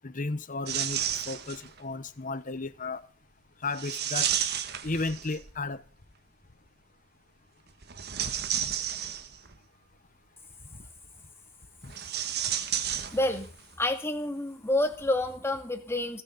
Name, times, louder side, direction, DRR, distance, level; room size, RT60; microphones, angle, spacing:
voice 1, 0.0-3.0 3.6-4.3 4.8-5.8 10.7-10.8 11.8-11.9, left 3 dB, 40° left, 12 dB, 1.0 m, -34 dB
sound 1, 0.7-1.8 3.7-5.6 7.8-9.6 11.8-13.6 13.9-14.0 14.9-15.1, right 9 dB, 55° right, 1.4 m, -32 dB
voice 2, 13.1-13.5 13.8-16.2, left 1 dB, 15° left, 5 dB, 2.2 m, -28 dB
29.5 x 10.5 x 4.0 m, 0.37 s
head